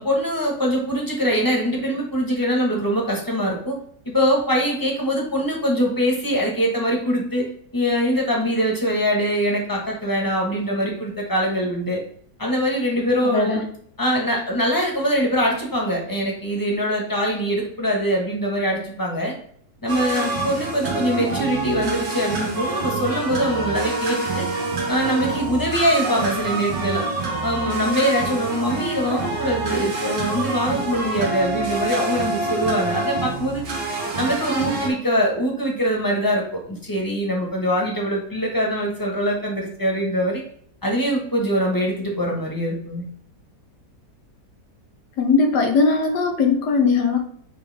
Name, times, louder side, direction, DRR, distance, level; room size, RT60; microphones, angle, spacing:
voice 1, 0.0-3.8 4.0-7.5 7.7-12.0 12.4-13.6 14.0-19.3 19.8-24.5 24.9-27.0 27.4-33.6 34.2-40.4 40.8-43.1, equal, 15° left, -1 dB, 1.3 m, -23 dB
voice 2, 13.2-13.6 45.2-47.2, left 4 dB, 70° left, 4 dB, 1.7 m, -19 dB
sound 1, 19.9-34.9, right 3 dB, 80° right, 2.0 m, -26 dB
8.9 x 3.4 x 3.5 m, 0.62 s
omnidirectional pair, 1.9 m